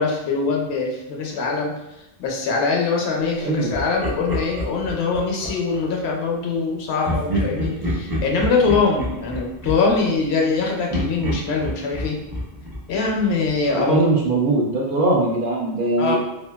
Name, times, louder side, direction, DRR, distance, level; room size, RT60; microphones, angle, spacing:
voice 1, 0.0-1.8 2.2-12.2 12.9-14.0 16.0-16.2, left 4 dB, 85° left, 0 dB, 0.8 m, -23 dB
voice 2, 3.4-3.7 13.7-16.2, right 2 dB, 60° right, -3 dB, 0.7 m, -21 dB
Laughter, 3.7-5.8 7.0-10.5 10.9-13.7, equal, 35° right, 0.3 m, -28 dB
2.7 x 2.1 x 2.2 m, 0.91 s
omnidirectional pair, 1.1 m